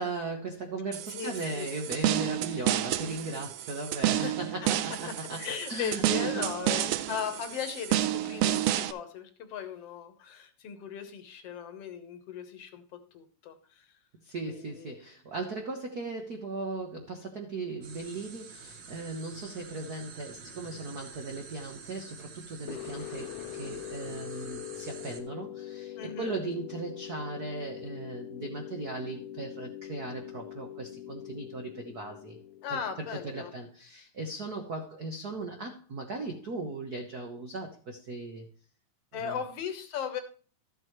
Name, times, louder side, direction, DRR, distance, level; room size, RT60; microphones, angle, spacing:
voice 1, 0.0-6.9 14.2-32.4 32.7-38.5 39.1-39.4, right 3 dB, 70° right, 0.9 m, -38 dB
sound 1, 0.9-8.9, right 13 dB, 90° right, 1.4 m, -30 dB
voice 2, 1.1-1.7 4.1-4.7 5.4-13.9 14.5-15.0 26.0-26.3 32.6-33.5 39.1-40.2, left 7 dB, 60° left, 1.9 m, -38 dB
sound 2, 17.8-25.2, right 5 dB, 55° right, 1.3 m, -48 dB
sound 3, 22.7-33.5, left 12 dB, 80° left, 2.1 m, -43 dB
13.5 x 7.8 x 3.1 m
omnidirectional pair, 3.6 m